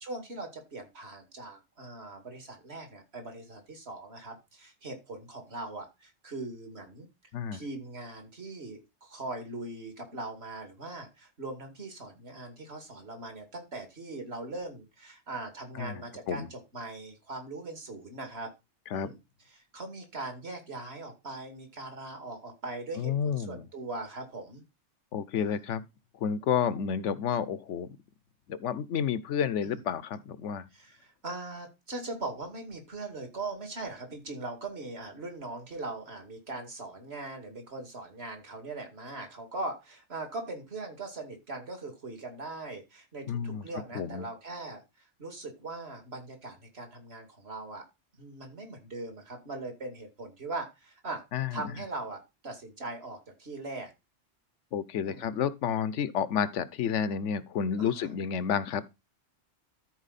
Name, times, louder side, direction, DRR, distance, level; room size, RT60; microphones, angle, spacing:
voice 1, 0.0-7.1 7.5-18.5 18.9-19.2 19.7-24.6 25.3-25.6 29.6-29.8 30.7-44.8 45.2-47.8 48.2-51.2 51.5-53.9 55.0-55.3 57.8-58.1, right 2 dB, 60° right, 2.6 m, -40 dB
voice 2, 15.7-16.5 18.9-19.1 23.0-23.7 25.1-25.9 26.2-28.0 28.5-30.6 43.3-43.7 43.9-44.3 51.3-51.6 54.7-58.8, left 7 dB, 85° left, 1.1 m, -30 dB
13.0 x 4.7 x 4.1 m
omnidirectional pair, 1.2 m